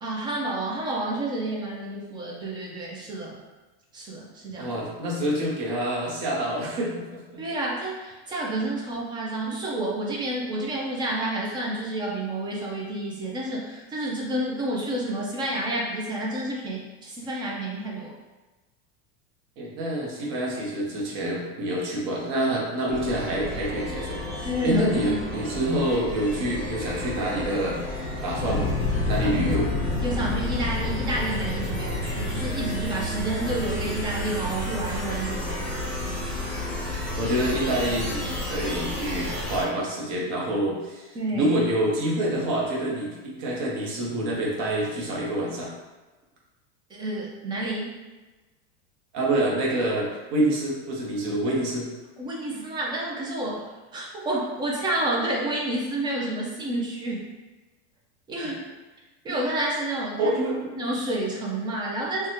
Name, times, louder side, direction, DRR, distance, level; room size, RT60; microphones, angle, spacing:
voice 1, 0.0-3.4 3.9-4.7 7.4-18.1 24.4-25.5 29.0-29.5 30.0-35.6 41.1-41.5 46.9-47.9 52.2-53.7 53.9-57.3 58.3-58.6 59.2-60.3 60.7-62.3, right 1 dB, 15° right, -3 dB, 0.3 m, -29 dB
voice 2, 4.6-7.4 19.6-27.8 28.2-28.7 29.0-29.7 37.1-45.7 49.1-51.9 60.2-60.7, right 1 dB, 50° right, -3 dB, 1.0 m, -27 dB
sound 1, 22.9-39.6, left 1 dB, ahead, 0.8 m, -32 dB
Fire, 28.3-33.4, left 4 dB, 40° left, 0.6 m, -30 dB
3.4 x 2.2 x 2.9 m, 1.2 s
supercardioid pair, 145°, 34 cm